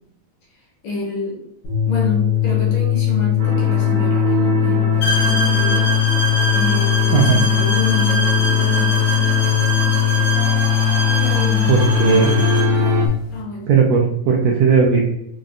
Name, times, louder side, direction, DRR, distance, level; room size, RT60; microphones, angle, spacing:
voice 1, 0.8-1.4 1.9-5.9 6.5-10.3 11.1-13.7, left 2 dB, 70° left, -2 dB, 1.8 m, -29 dB
sound 1, 1.6-13.1, left 14 dB, 90° left, 2.9 m, -19 dB
sound 2, 3.4-13.0, right 4 dB, 65° right, 1.4 m, -26 dB
sound 3, 5.0-12.8, right 2 dB, 55° left, 1.0 m, -24 dB
voice 2, 11.7-12.3 13.7-15.0, right 6 dB, 80° right, -1 dB, 1.5 m, -16 dB
6.3 x 2.1 x 2.5 m, 0.82 s
omnidirectional pair, 3.5 m